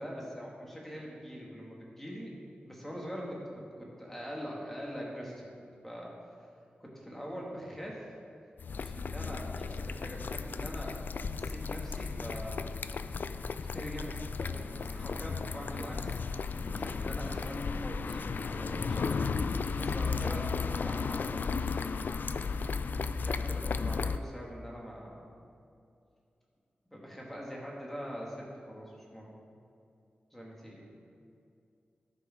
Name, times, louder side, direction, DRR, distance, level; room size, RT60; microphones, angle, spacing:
voice 1, 0.0-2.3 2.6-5.5 5.8-6.1 6.8-8.1 8.8-10.9 11.3-12.7 13.5-16.2 16.6-21.8 23.0-25.3 26.9-29.3 30.3-30.9, equal, 10° left, -3 dB, 2.3 m, -43 dB
sound 1, 8.6-24.2, left 5 dB, 65° left, 0.3 m, -34 dB
13.0 x 5.4 x 4.6 m, 2.5 s
wide cardioid pair, 75°, 3 cm